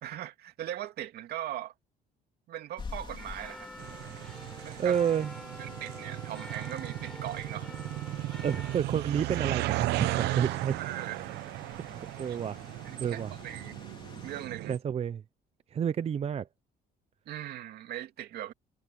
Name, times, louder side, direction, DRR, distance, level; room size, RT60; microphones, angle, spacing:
voice 1, 0.0-1.7 2.5-3.7 4.6-5.0 5.6-7.7 10.8-11.3 12.3-12.4 12.8-13.8 14.2-14.7 17.3-18.5, right 12 dB, 70° right, 2.9 m, -39 dB
sound 1, 2.8-14.5, left 5 dB, 30° left, 3.1 m, -49 dB
sound 2, 3.2-8.8, equal, 5° left, 7.8 m, -47 dB
sound 3, 3.8-14.8, right 18 dB, 85° right, 0.7 m, -36 dB
voice 2, 4.8-5.3 8.4-10.8 11.8-12.6 13.0-13.3 14.7-15.2 15.7-16.5, right 8 dB, 40° right, 0.7 m, -30 dB
cardioid pair, 110°, 17 cm